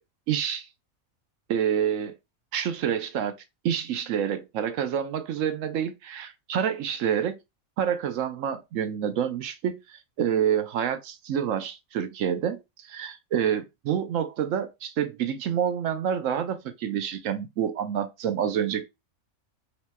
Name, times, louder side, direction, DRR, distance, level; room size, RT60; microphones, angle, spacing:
voice 1, 0.3-0.7 1.5-2.1 2.5-3.3 3.6-7.4 7.8-18.9, right 9 dB, 70° right, 1.0 m, -28 dB
5.8 x 3.2 x 2.2 m
omnidirectional pair, 1.5 m